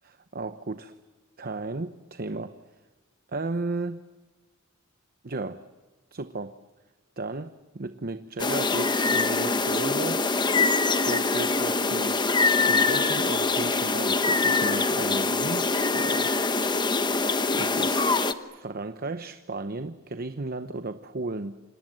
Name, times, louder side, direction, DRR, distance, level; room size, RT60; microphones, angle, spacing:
voice 1, 0.0-0.9 1.4-2.6 3.3-4.0 5.2-5.6 6.1-6.6 7.2-10.5 11.0-12.2 12.6-16.3 17.5-18.2 18.5-21.6, right 3 dB, 45° right, 10 dB, 0.9 m, -34 dB
sound 1, 8.4-18.3, left 3 dB, 20° left, 1.1 m, -24 dB
29.5 x 26.0 x 7.6 m, 1.3 s
head